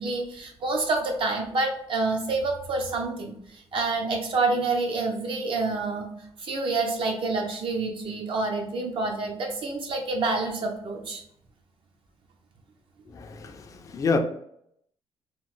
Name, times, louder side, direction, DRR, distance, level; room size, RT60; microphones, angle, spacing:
voice 1, 0.0-6.1 6.4-11.2, right 3 dB, 55° right, 0.5 m, -28 dB
voice 2, 13.1-14.2, left 4 dB, 30° left, 0.3 m, -28 dB
3.0 x 2.0 x 3.1 m
cardioid pair, 130°, 11 cm